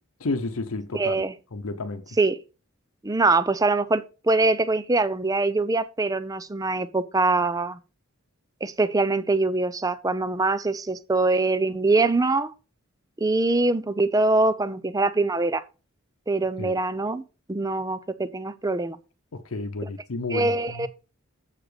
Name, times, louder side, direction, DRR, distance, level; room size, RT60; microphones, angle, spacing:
voice 1, 0.2-1.2 1.5-2.0 16.6-16.8 19.3-20.9, left 3 dB, 85° left, 0.8 m, -31 dB
voice 2, 0.9-1.3 2.2-2.4 3.0-7.8 8.6-12.5 13.2-15.6 16.3-17.2 17.5-19.0 19.8-19.9 20.3-20.9, right 3 dB, 15° right, 0.5 m, -23 dB
7.4 x 6.9 x 5.0 m
head